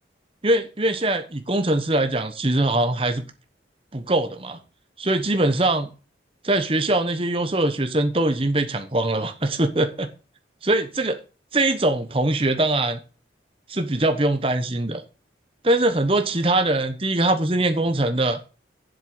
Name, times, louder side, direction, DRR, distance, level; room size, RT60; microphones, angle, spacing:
voice 1, 0.4-3.2 3.9-4.6 5.0-5.9 6.4-10.1 10.6-11.2 11.5-13.0 13.7-15.0 15.6-18.4, right 2 dB, 30° right, 1.1 m, -22 dB
7.7 x 7.6 x 6.6 m
head